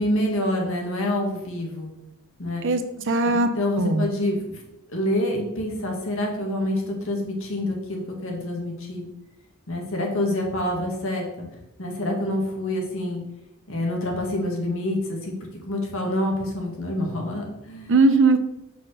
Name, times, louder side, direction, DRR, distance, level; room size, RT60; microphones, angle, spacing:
voice 1, 0.0-1.9 2.4-2.7 3.3-4.6 4.9-9.0 9.7-11.5 11.8-13.2 13.7-15.3 15.7-17.9, left 1 dB, 65° left, 1 dB, 1.9 m, -27 dB
voice 2, 3.1-4.0 17.9-18.4, right 3 dB, 60° right, 9 dB, 0.7 m, -19 dB
5.9 x 4.5 x 6.2 m, 0.90 s
head